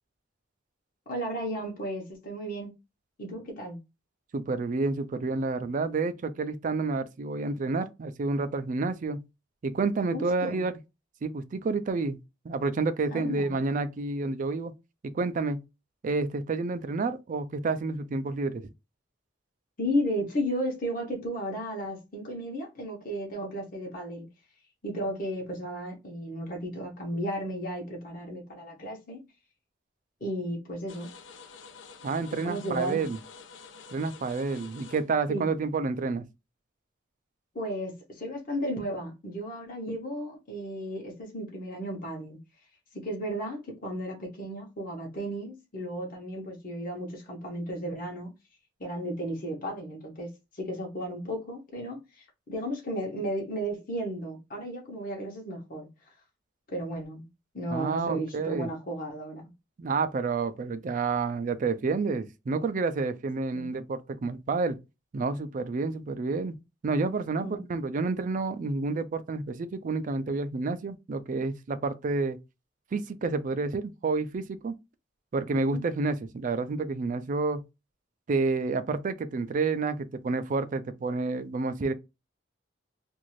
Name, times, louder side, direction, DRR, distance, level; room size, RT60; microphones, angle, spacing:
voice 1, 1.1-2.7 3.2-3.8 10.1-10.7 13.1-13.5 19.8-24.3 24.8-29.2 30.2-31.1 32.4-33.1 35.3-35.5 37.5-42.4 42.9-48.3 48.8-55.9 56.7-57.2 57.5-59.5 63.5-63.7 67.4-67.6 75.7-75.8, equal, 50° left, 0.9 m, -34 dB
voice 2, 4.3-9.2 9.6-10.7 11.2-12.2 12.4-14.7 15.0-15.6 16.0-18.7 32.0-33.2 33.9-36.2 57.7-58.7 59.8-64.8 65.1-66.5 66.8-72.4 72.9-74.7 75.3-77.6 78.3-81.9, right 3 dB, 45° right, 0.4 m, -29 dB
sound 1, 30.9-36.1, left 5 dB, 80° left, 0.5 m, -49 dB
2.6 x 2.4 x 3.0 m
head